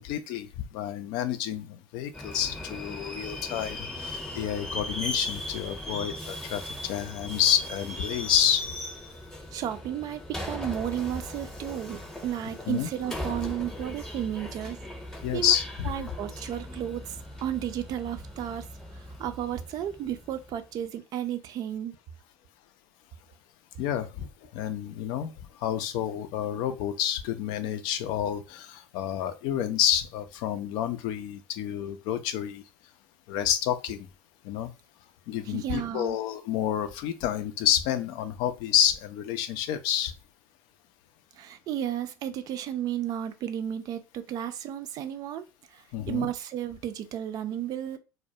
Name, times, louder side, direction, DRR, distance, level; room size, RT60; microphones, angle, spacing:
voice 1, 0.0-8.7 12.7-12.9 15.2-15.9 23.8-25.3 25.6-32.6 33.3-34.1 34.4-34.7 35.3-40.1 45.9-46.3, left 10 dB, 60° left, 0.4 m, -29 dB
Subway metro underground, 2.1-20.6, left 1 dB, 5° left, 0.7 m, -38 dB
voice 2, 9.5-14.8 15.3-15.5 15.8-18.7 18.9-22.0 35.5-36.2 41.4-45.4 45.7-48.0, right 10 dB, 50° right, 0.4 m, -33 dB
2.2 x 2.1 x 2.7 m
hypercardioid pair, 75°, 9 cm